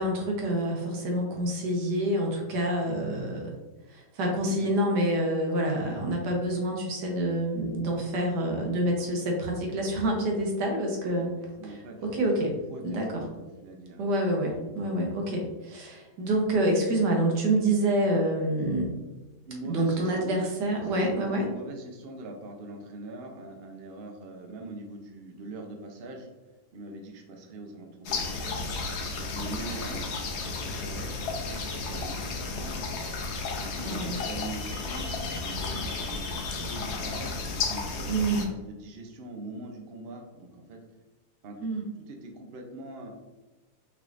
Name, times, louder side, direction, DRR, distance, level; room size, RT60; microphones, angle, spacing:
voice 1, 0.0-3.5 3.9-11.3 11.6-11.7 12.0-12.5 12.8-13.2 14.0-18.9 19.6-21.5 33.8-34.1 38.1-38.5 41.6-41.8, right 1 dB, 75° right, 1 dB, 1.6 m, -27 dB
voice 2, 4.2-4.8 11.6-12.1 12.3-14.0 18.0-18.2 19.4-20.5 20.8-26.3 26.7-28.7 29.1-32.8 33.6-40.8 41.4-41.6 42.1-43.1, right 2 dB, 60° right, 2 dB, 0.6 m, -42 dB
sound 1, 28.0-38.4, left 3 dB, 60° left, 0.7 m, -33 dB
5.5 x 3.6 x 2.5 m, 1.1 s
omnidirectional pair, 1.9 m